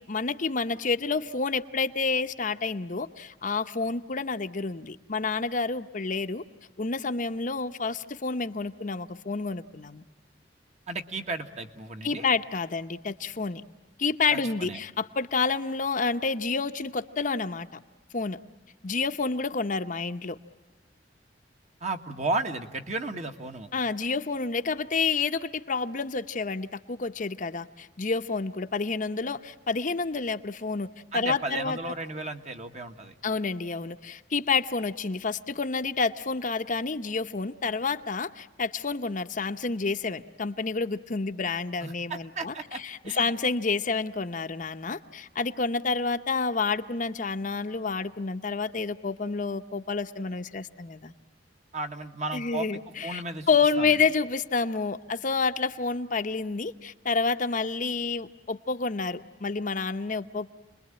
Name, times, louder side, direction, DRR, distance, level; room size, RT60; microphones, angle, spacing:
voice 1, 0.0-6.4 6.8-10.0 12.0-13.6 14.0-17.7 18.1-18.4 18.8-20.4 23.7-30.9 31.1-31.8 33.2-51.1 52.3-60.5, left 4 dB, 45° left, 8 dB, 0.8 m, -29 dB
voice 2, 10.9-12.3 14.3-14.8 21.8-23.7 31.1-33.1 41.8-43.3 51.7-52.7 53.0-53.5 53.8-54.0, right 2 dB, 40° right, 5 dB, 1.6 m, -34 dB
29.5 x 21.5 x 8.8 m, 1.2 s
head